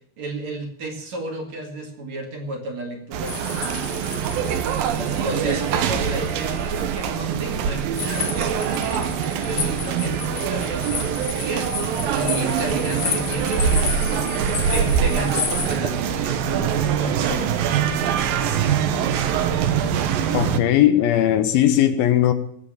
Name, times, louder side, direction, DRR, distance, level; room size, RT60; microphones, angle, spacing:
voice 1, 0.2-3.4 4.9-9.1 9.4-11.7 12.0-14.3 14.7-17.8, right 2 dB, 50° right, 3.2 m, -32 dB
sound 1, 3.1-20.6, right 8 dB, 70° right, 2.6 m, -24 dB
sound 2, 3.3-7.0 7.9-15.7, left 8 dB, 55° left, 2.3 m, -32 dB
voice 2, 20.3-22.3, left 11 dB, 75° left, 2.5 m, -18 dB
17.5 x 7.6 x 8.7 m
omnidirectional pair, 4.6 m